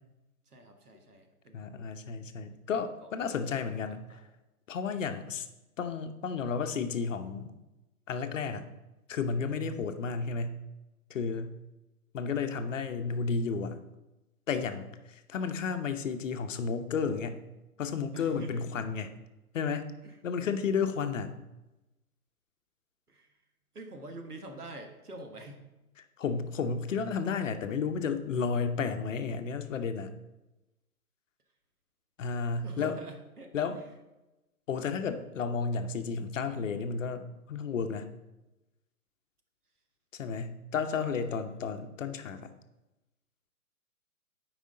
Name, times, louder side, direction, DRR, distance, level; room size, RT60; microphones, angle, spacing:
voice 1, 0.5-1.6 2.5-2.6 3.0-4.3 18.1-18.6 20.0-20.5 20.9-21.0 23.1-23.4 23.7-25.6 32.6-33.9 40.7-41.4, right 2 dB, 85° right, 5 dB, 1.4 m, -47 dB
voice 2, 1.5-4.2 4.7-5.5 5.8-7.5 8.1-8.6 9.1-10.6 11.1-11.5 12.1-13.8 14.5-17.4 17.8-19.1 19.5-19.9 20.2-21.3 26.2-30.1 32.2-32.9 33.5-33.8 34.7-38.1 40.1-42.5, left 5 dB, 55° left, 8 dB, 0.8 m, -32 dB
9.0 x 5.0 x 3.7 m, 1.0 s
figure-of-eight pair, 130°, 45 cm